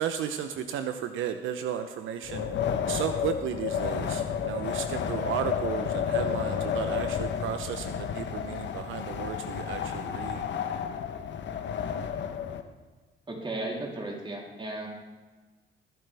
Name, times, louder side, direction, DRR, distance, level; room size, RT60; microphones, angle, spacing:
voice 1, 0.0-2.5 2.9-10.4, right 9 dB, 85° right, 8 dB, 0.7 m, -34 dB
Wind, 2.2-12.6, left 8 dB, 65° left, 1.0 m, -31 dB
voice 2, 13.3-14.9, right 2 dB, 25° right, -2 dB, 3.3 m, -35 dB
22.5 x 7.6 x 3.4 m, 1.3 s
cardioid pair, 90°, 20 cm